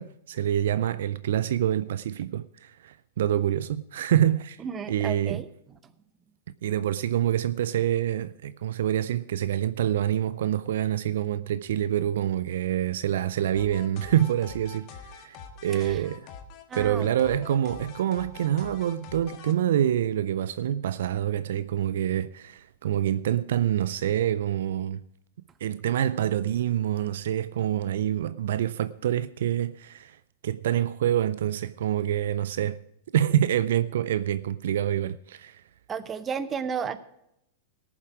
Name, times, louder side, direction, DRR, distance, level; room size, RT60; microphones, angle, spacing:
voice 1, 0.0-4.6 4.9-5.4 6.6-16.3 16.8-25.0 25.6-30.2 30.4-32.8 33.1-35.6, right 11 dB, 65° right, 0.3 m, -26 dB
voice 2, 4.6-5.9 15.7-16.0 16.7-17.1 35.9-37.0, right 6 dB, 25° right, 0.8 m, -33 dB
sound 1, 13.5-19.5, left 6 dB, 40° left, 1.5 m, -44 dB
18.5 x 7.3 x 4.8 m
figure-of-eight pair, 100°, 0 cm